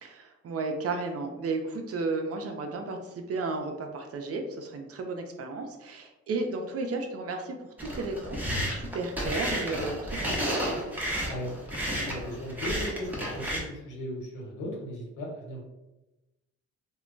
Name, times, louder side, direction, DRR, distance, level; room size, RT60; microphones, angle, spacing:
voice 1, 0.0-10.5, right 3 dB, 50° right, 4 dB, 0.5 m, -33 dB
sound 1, 7.8-13.6, equal, 5° right, 0.8 m, -32 dB
voice 2, 11.3-11.8 12.1-15.6, equal, 80° left, -2 dB, 1.0 m, -37 dB
2.2 x 2.1 x 3.7 m, 1.0 s
cardioid pair, 90°, 30 cm